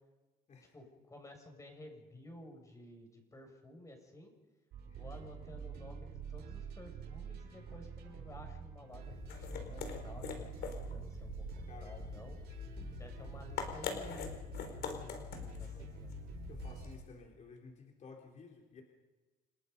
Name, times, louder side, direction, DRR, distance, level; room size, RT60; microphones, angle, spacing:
voice 1, 0.7-4.3 4.8-12.6 12.9-16.1, left 1 dB, 20° left, 4 dB, 6.8 m, -53 dB
sound 1, 4.7-16.9, right 7 dB, 75° right, 6.1 m, -47 dB
voice 2, 4.9-5.2 11.7-12.0 12.5-12.9 15.8-15.9 16.5-18.8, left 4 dB, 45° left, 1 dB, 3.7 m, -55 dB
sound 2, 8.9-17.1, left 7 dB, 70° left, 3.9 m, -44 dB
29.0 x 19.5 x 5.4 m, 1.2 s
cardioid pair, 110°, 17 cm